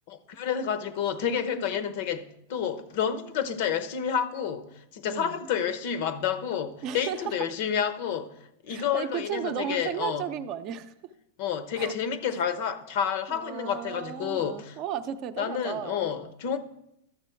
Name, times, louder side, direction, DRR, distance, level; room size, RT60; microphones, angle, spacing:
voice 1, 0.1-8.3 8.6-10.3 11.4-14.8 15.4-16.6, left 8 dB, 55° left, 0.9 m, -30 dB
voice 2, 5.1-5.4 6.8-7.3 8.7-10.9 11.7-11.9 12.3-12.4 13.3-16.1, right 9 dB, 40° right, 0.6 m, -34 dB
12.0 x 6.8 x 4.6 m
hypercardioid pair, 135°, 0 cm